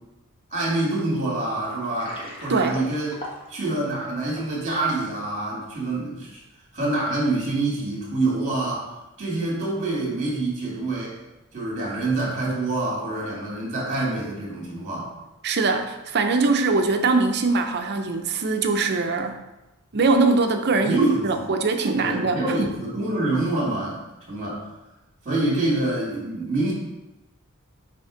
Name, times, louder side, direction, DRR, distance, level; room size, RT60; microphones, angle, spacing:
voice 1, 0.5-3.2 3.5-6.4 6.7-8.8 9.2-11.1 11.5-15.1 20.8-21.5 22.0-24.0 24.3-24.6 25.2-26.7, right 2 dB, 30° right, -3 dB, 2.2 m, -26 dB
Water, 1.8-4.9, equal, 25° left, 1.2 m, -39 dB
voice 2, 15.4-19.4 19.9-22.7, right 3 dB, 50° right, 6 dB, 0.6 m, -22 dB
6.7 x 3.5 x 5.1 m, 1.0 s
head